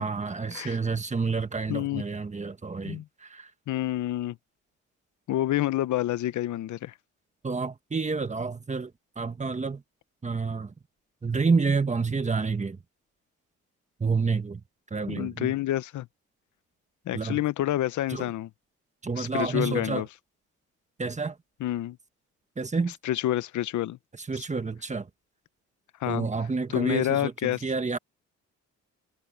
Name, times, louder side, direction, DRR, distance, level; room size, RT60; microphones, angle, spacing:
voice 1, 0.0-3.5 7.4-8.9 9.2-9.8 10.2-10.7 11.2-12.8 14.0-14.6 14.9-15.5 17.1-17.4 18.1-18.2 19.0-20.0 21.0-21.4 22.6-22.9 24.2-25.1 26.1-28.0, right 4 dB, 25° right, 1.5 m, -29 dB
voice 2, 1.7-2.0 2.8-3.1 3.7-4.4 5.3-6.9 15.1-16.1 17.1-18.5 19.2-20.1 21.6-22.0 23.0-24.0 24.3-24.5 26.0-26.3 26.7-27.6, left 13 dB, 75° left, 0.9 m, -28 dB
cardioid pair, 90°, 30 cm